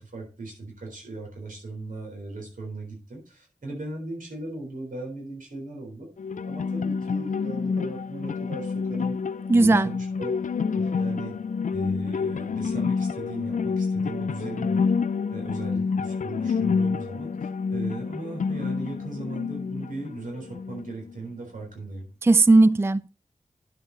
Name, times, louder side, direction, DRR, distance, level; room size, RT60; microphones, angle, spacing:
voice 1, 0.0-6.1 6.5-9.1 9.5-10.3 10.7-11.3 11.7-14.9 15.3-22.1, right 2 dB, 90° right, 4.0 m, -38 dB
sound 1, 6.2-21.1, left 5 dB, 70° left, 0.5 m, -28 dB
voice 2, 9.5-9.9 22.2-23.1, right 3 dB, 20° right, 0.4 m, -17 dB
10.5 x 7.3 x 4.0 m
cardioid pair, 45°, 13 cm